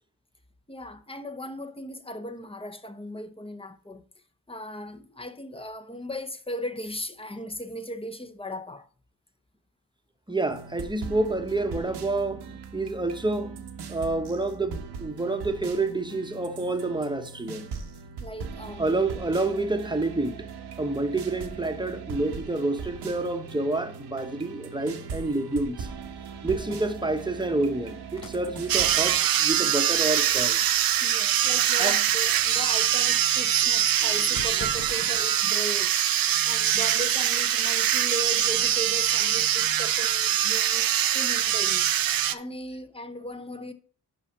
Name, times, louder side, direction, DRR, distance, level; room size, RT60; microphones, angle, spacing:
voice 1, 0.7-4.0 4.5-8.9 18.2-19.0 26.4-26.7 31.0-35.9 36.4-40.9 41.1-41.8 42.3-43.7, equal, 15° left, 0.8 m, -37 dB
voice 2, 10.3-13.6 13.9-17.7 18.8-20.5 20.8-25.9 26.4-30.6 31.8-32.0 34.1-34.3, right 2 dB, 10° right, 1.0 m, -28 dB
sound 1, 10.5-29.2, right 5 dB, 85° right, 1.1 m, -40 dB
sound 2, 25.5-25.6 26.0-26.2 26.7-29.6 31.8-31.9 32.1-32.4 33.3-35.3, left 4 dB, 55° left, 1.0 m, -45 dB
sound 3, 28.7-42.3, right 11 dB, 65° right, 0.5 m, -23 dB
5.7 x 5.6 x 5.4 m
cardioid pair, 65°, 39 cm